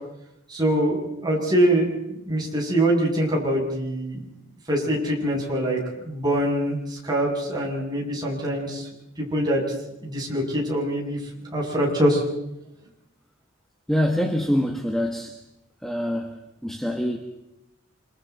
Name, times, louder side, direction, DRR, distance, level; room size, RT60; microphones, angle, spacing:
voice 1, 0.5-4.2 4.7-5.8 6.0-8.9 9.2-9.6 10.0-11.2 11.5-12.2, right 1 dB, 20° right, -3 dB, 8.0 m, -24 dB
voice 2, 13.9-15.4 15.8-17.2, equal, ahead, 2 dB, 1.5 m, -25 dB
28.0 x 27.5 x 4.2 m, 0.87 s
head